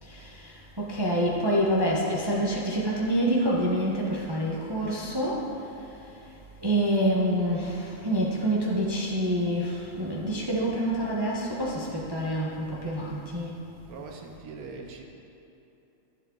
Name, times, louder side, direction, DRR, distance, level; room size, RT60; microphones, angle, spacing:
voice 1, 0.0-5.5 6.6-13.6, equal, 40° right, -4 dB, 0.3 m, -27 dB
voice 2, 13.9-15.0, right 4 dB, 60° right, 2 dB, 0.9 m, -41 dB
13.0 x 7.4 x 3.9 m, 2.9 s
omnidirectional pair, 2.3 m